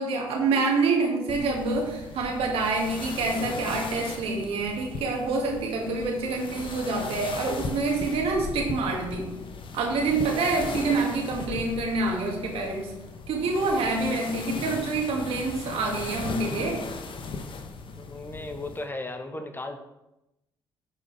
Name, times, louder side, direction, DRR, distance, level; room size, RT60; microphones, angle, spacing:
voice 1, 0.0-9.3 9.7-12.9 13.3-16.8, right 3 dB, 65° right, 0 dB, 2.1 m, -27 dB
sound 1, 1.3-18.9, left 4 dB, 55° left, 1.1 m, -38 dB
voice 2, 18.0-19.8, left 2 dB, 20° left, 6 dB, 1.3 m, -36 dB
11.0 x 5.1 x 3.4 m, 0.92 s
hypercardioid pair, 45°, 11 cm